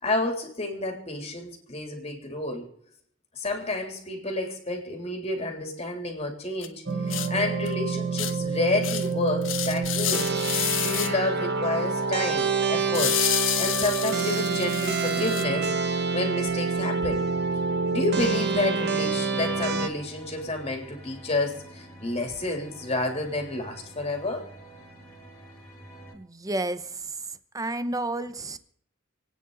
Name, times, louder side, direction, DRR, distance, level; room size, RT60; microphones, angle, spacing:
voice 1, 0.0-2.7 3.4-10.3 10.8-17.2 17.9-24.4, left 2 dB, 30° left, 3 dB, 3.3 m, -30 dB
sound 1, 6.6-6.7 7.1-7.3 7.7-7.8 8.2-8.3 8.8-9.1 9.4-11.1 12.9-15.4, left 11 dB, 75° left, 1.4 m, -29 dB
sound 2, 6.9-19.9, right 4 dB, 55° right, 1.2 m, -27 dB
sound 3, 17.0-26.1, right 1 dB, 15° left, 4.1 m, -47 dB
voice 2, 26.1-27.2 27.5-28.6, right 2 dB, 20° right, 12 dB, 0.9 m, -31 dB
28.5 x 9.6 x 4.0 m, 0.65 s
head